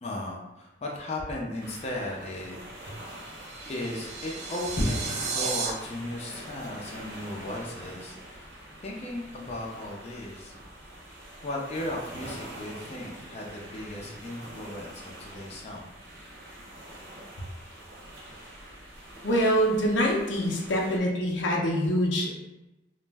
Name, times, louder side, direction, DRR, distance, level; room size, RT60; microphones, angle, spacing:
voice 1, 0.0-3.0 3.7-8.5 8.8-10.5 11.4-15.9, left 1 dB, 35° left, -2 dB, 0.4 m, -35 dB
sound 1, 1.6-21.0, right 1 dB, 70° right, 0.8 m, -44 dB
sound 2, 3.0-5.7, right 4 dB, 40° right, 0.4 m, -34 dB
voice 2, 19.2-22.4, equal, 90° left, -1 dB, 0.6 m, -25 dB
2.4 x 2.1 x 3.3 m, 0.98 s
head